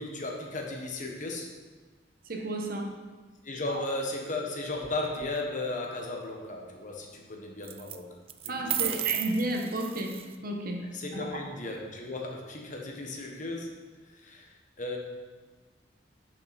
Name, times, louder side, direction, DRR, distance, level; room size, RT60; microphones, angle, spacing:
voice 1, 0.0-1.5 3.4-8.1 8.4-9.1 10.9-13.7 14.1-14.5 14.8-15.0, left 2 dB, 45° left, 1 dB, 1.2 m, -35 dB
voice 2, 2.2-2.9 3.7-3.8 8.5-10.1 10.4-10.8 11.1-11.3, right 1 dB, 50° right, 2 dB, 1.1 m, -32 dB
sound 1, 4.8-5.3 7.6-8.0 8.3-10.3, right 11 dB, 30° right, 0.3 m, -33 dB
10.0 x 5.7 x 4.1 m, 1.3 s
head